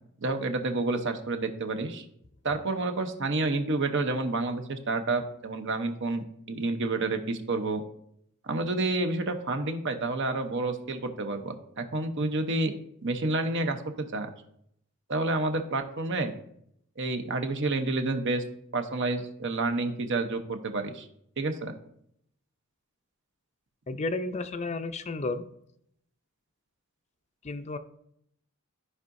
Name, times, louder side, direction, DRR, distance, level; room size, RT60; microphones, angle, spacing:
voice 1, 0.2-2.0 2.4-7.8 8.4-12.7 13.0-14.3 15.1-16.3 17.0-18.4 18.7-21.1 21.4-21.7, right 2 dB, 55° right, 6 dB, 0.9 m, -29 dB
voice 2, 23.9-25.4 27.4-27.8, left 3 dB, 30° left, 10 dB, 0.5 m, -32 dB
14.0 x 4.8 x 2.6 m, 0.72 s
head